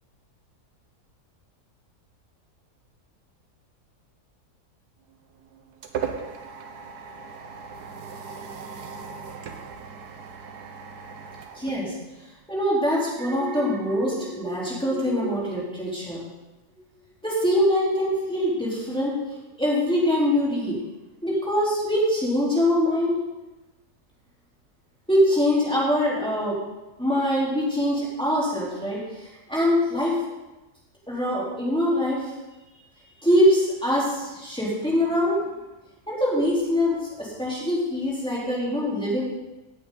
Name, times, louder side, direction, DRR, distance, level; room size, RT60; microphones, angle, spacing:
sound 1, 5.1-12.5, right 6 dB, 85° right, 1.5 m, -38 dB
voice 1, 11.5-11.9 12.5-16.2 17.2-19.2 19.6-20.8 21.2-23.2 25.1-26.6 27.0-30.2 31.1-32.3 33.2-35.4 36.1-39.2, equal, 5° left, -7 dB, 3.9 m, -23 dB
Alarm, 13.1-16.4 16.8-17.1, right 2 dB, 45° right, 0.8 m, -37 dB
17.0 x 8.6 x 4.0 m, 1.1 s
omnidirectional pair, 1.7 m